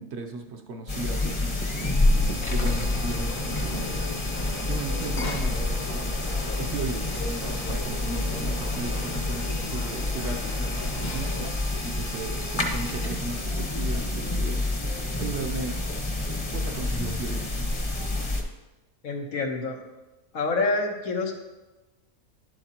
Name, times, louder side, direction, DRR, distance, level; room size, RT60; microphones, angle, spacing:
voice 1, 0.0-2.0 2.5-3.8 4.7-6.1 6.5-15.8 16.5-17.7, right 3 dB, 60° right, 4 dB, 0.9 m, -36 dB
sound 1, 0.9-18.4, left 2 dB, 25° left, 0.8 m, -28 dB
sound 2, 2.4-11.5, left 2 dB, 50° left, 1.0 m, -38 dB
voice 2, 19.0-19.8 20.3-21.3, left 3 dB, 85° left, 2 dB, 1.6 m, -27 dB
11.0 x 7.9 x 2.9 m, 1.1 s
omnidirectional pair, 1.4 m